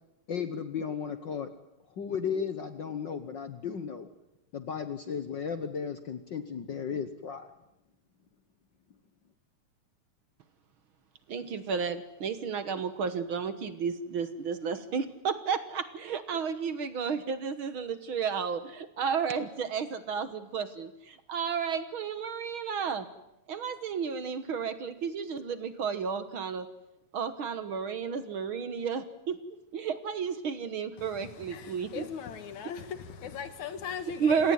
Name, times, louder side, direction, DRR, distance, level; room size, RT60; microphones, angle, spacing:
voice 1, 0.3-1.5 1.9-4.1 4.5-7.5, left 6 dB, 60° left, 1.2 m, -35 dB
voice 2, 11.3-23.1 23.5-26.7 27.1-29.4 29.7-32.1 34.2-34.5, right 6 dB, 55° right, 1.7 m, -32 dB
voice 3, 31.0-34.5, left 7 dB, 75° left, 3.0 m, -39 dB
28.5 x 18.0 x 9.4 m
omnidirectional pair, 3.4 m